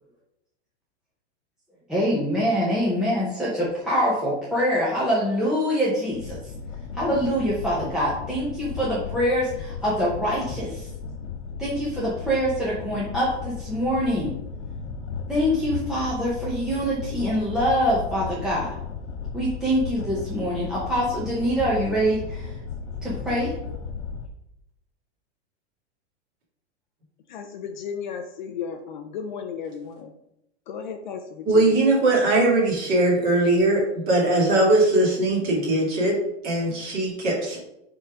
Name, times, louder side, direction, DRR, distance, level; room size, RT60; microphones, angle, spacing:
voice 1, 1.9-6.5 6.9-10.9 11.6-14.3 15.3-18.7 19.3-22.6 23.0-23.5, equal, ahead, -9 dB, 0.8 m, -24 dB
sound 1, 6.1-24.3, left 5 dB, 85° left, 1.0 m, -35 dB
voice 2, 27.3-30.1 30.7-31.9, left 7 dB, 40° left, 6 dB, 0.6 m, -34 dB
voice 3, 31.5-37.6, right 2 dB, 25° right, -3 dB, 2.1 m, -20 dB
7.0 x 3.9 x 4.8 m, 0.83 s
supercardioid pair, 170°, 36 cm